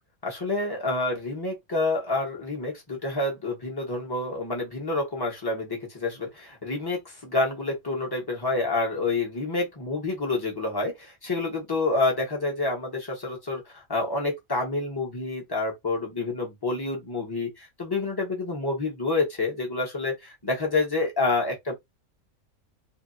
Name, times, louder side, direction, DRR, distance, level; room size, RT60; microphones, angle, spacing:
voice 1, 0.2-21.7, left 3 dB, 20° left, 1.0 m, -28 dB
2.8 x 2.6 x 2.6 m
omnidirectional pair, 1.5 m